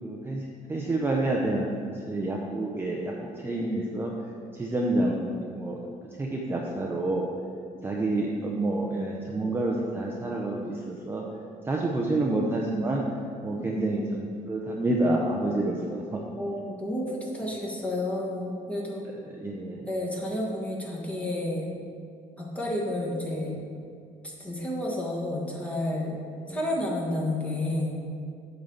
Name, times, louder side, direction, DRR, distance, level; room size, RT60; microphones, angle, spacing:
voice 1, 0.0-4.1 4.5-5.3 5.6-5.8 6.2-7.3 7.8-11.2 11.7-13.0 13.4-16.2 19.3-19.9 26.5-26.6, right 2 dB, 15° right, -1 dB, 0.7 m, -28 dB
voice 2, 13.5-14.3 15.7-15.8 16.4-19.0 19.9-21.6 22.4-23.6 24.2-26.2 26.5-28.0, left 1 dB, 10° left, -3 dB, 1.6 m, -31 dB
8.5 x 4.0 x 7.0 m, 2.4 s
cardioid pair, 145°, 14 cm